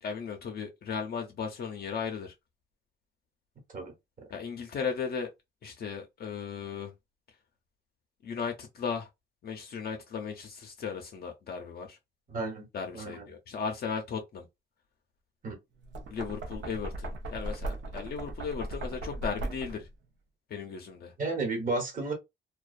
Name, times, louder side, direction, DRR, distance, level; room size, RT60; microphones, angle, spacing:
voice 1, 0.0-2.3 4.3-5.3 5.6-6.9 8.2-9.1 9.4-12.0 12.7-14.5 16.1-19.9 20.5-21.1, left 6 dB, 55° left, 0.5 m, -36 dB
voice 2, 12.3-12.7 12.9-13.3 15.4-15.6 21.2-22.1, right 3 dB, 45° right, 1.1 m, -32 dB
Knock, 15.8-19.9, right 2 dB, 70° right, 0.6 m, -37 dB
2.4 x 2.2 x 2.4 m
cardioid pair, 115°, 20 cm